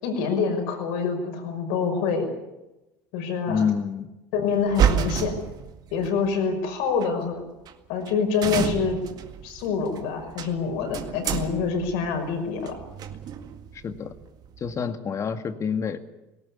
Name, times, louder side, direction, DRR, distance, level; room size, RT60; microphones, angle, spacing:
voice 1, 0.0-2.3 3.1-3.6 4.3-5.4 5.9-7.4 7.9-9.0 9.4-12.7, left 5 dB, 70° left, 6 dB, 5.8 m, -26 dB
voice 2, 3.5-4.1 13.7-14.1 14.6-16.0, left 6 dB, 35° left, 9 dB, 2.1 m, -27 dB
sound 1, 4.6-6.1 7.0-7.1 7.7-7.8 8.0-8.1 8.4-14.7, right 9 dB, 50° right, 2.0 m, -30 dB
18.5 x 18.0 x 9.7 m, 0.99 s
hypercardioid pair, 80°, 8 cm